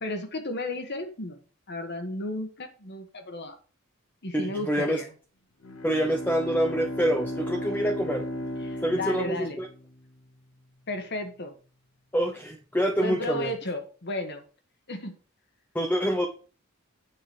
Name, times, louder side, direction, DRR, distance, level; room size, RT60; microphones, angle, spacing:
voice 1, 0.0-1.4 1.7-3.5 4.2-5.1 8.6-9.6 10.9-11.5 13.0-14.4 14.9-15.2, left 1 dB, 55° left, 6 dB, 1.4 m, -33 dB
voice 2, 4.3-5.0 5.8-8.3 8.8-9.7 12.1-13.5 15.7-16.3, equal, 10° left, 3 dB, 0.8 m, -26 dB
Bowed string instrument, 5.6-10.2, left 1 dB, 80° left, 1.1 m, -35 dB
8.9 x 5.0 x 4.9 m, 0.38 s
head